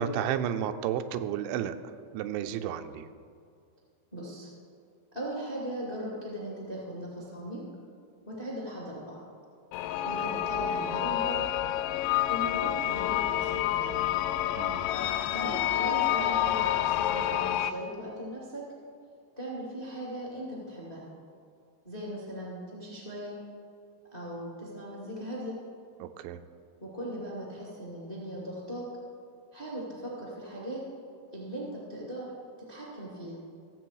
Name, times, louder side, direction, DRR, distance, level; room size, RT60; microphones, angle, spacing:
voice 1, 0.0-3.1 14.6-14.9 26.0-26.4, right 9 dB, 85° right, 9 dB, 2.9 m, -32 dB
voice 2, 4.1-4.5 5.1-7.6 8.2-9.2 10.0-11.5 12.3-14.0 15.3-18.6 19.4-21.0 21.8-23.4 24.1-25.6 26.8-28.9 29.5-30.8 31.3-32.3 32.7-33.4, equal, 25° left, -4 dB, 1.2 m, -38 dB
sound 1, 9.7-17.7, left 12 dB, 90° left, 2.9 m, -28 dB
16.0 x 7.7 x 4.7 m, 2.3 s
omnidirectional pair, 5.3 m